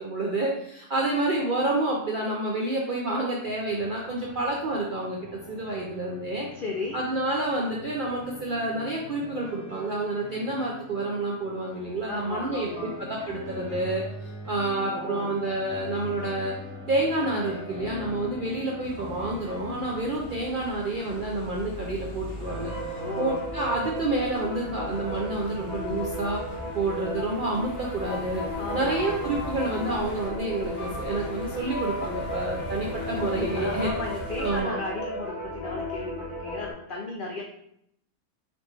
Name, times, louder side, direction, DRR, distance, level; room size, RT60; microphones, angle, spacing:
voice 1, 0.0-5.2 5.5-6.5 6.9-12.7 13.1-14.0 14.5-16.5 16.9-22.7 23.2-26.4 26.7-28.4 28.7-33.9 34.4-34.7, right 2 dB, 65° right, -3 dB, 0.5 m, -29 dB
sound 1, 3.4-20.5, left 2 dB, 15° left, 0.9 m, -42 dB
voice 2, 6.5-7.0 12.1-13.0 14.7-15.3 22.9-23.4 28.6-29.2 33.5-37.4, left 2 dB, 75° left, 0 dB, 0.4 m, -35 dB
sound 2, 18.8-34.6, equal, 50° left, 0.8 m, -40 dB
sound 3, 22.4-36.7, equal, 25° right, 0.6 m, -35 dB
4.3 x 3.1 x 3.2 m, 0.74 s
omnidirectional pair, 1.6 m